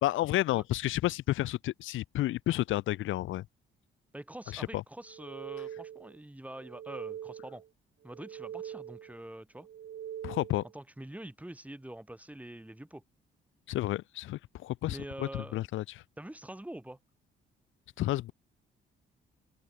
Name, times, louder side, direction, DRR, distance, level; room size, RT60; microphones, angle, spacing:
voice 1, 0.0-3.4 4.5-4.8 10.2-10.6 13.7-16.0 18.0-18.3, left 15 dB, 80° left, 0.9 m, -31 dB
voice 2, 4.1-7.6 8.0-9.7 10.7-13.0 14.9-15.6 16.2-17.0, right 1 dB, 5° right, 7.1 m, -45 dB
sound 1, 5.0-6.2 6.5-7.7 8.0-9.2 9.6-10.7, right 10 dB, 65° right, 6.3 m, -43 dB
open air
cardioid pair, 90°, 20 cm